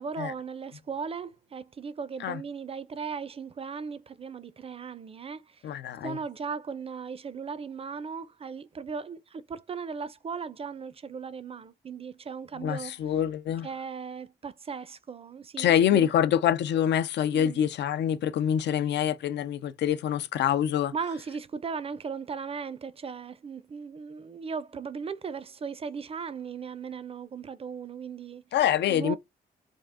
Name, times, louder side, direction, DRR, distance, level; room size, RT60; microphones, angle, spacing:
voice 1, 0.0-5.6 6.0-13.0 13.6-16.1 17.3-17.6 20.9-28.4 28.9-29.2, right 5 dB, 35° right, 0.4 m, -37 dB
voice 2, 5.6-6.2 12.6-13.7 15.6-20.9 28.5-29.2, left 10 dB, 75° left, 0.4 m, -25 dB
3.6 x 2.4 x 3.4 m
cardioid pair, 80°, 18 cm